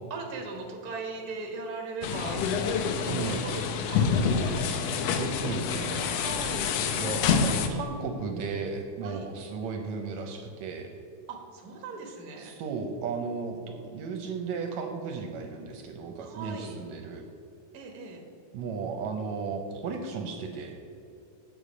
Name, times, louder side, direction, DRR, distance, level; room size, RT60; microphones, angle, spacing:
voice 1, 0.1-2.4 3.0-5.0 6.1-6.7 9.0-9.3 11.3-12.6 16.2-16.8 17.7-18.2, right 3 dB, 45° right, 1 dB, 1.2 m, -39 dB
sound 1, 2.0-7.7, left 6 dB, 75° left, 1.6 m, -27 dB
voice 2, 3.1-3.4 5.2-6.0 6.9-10.9 12.4-17.2 18.5-20.7, right 5 dB, 75° right, 4 dB, 1.8 m, -35 dB
9.2 x 6.8 x 5.0 m, 2.6 s
omnidirectional pair, 3.5 m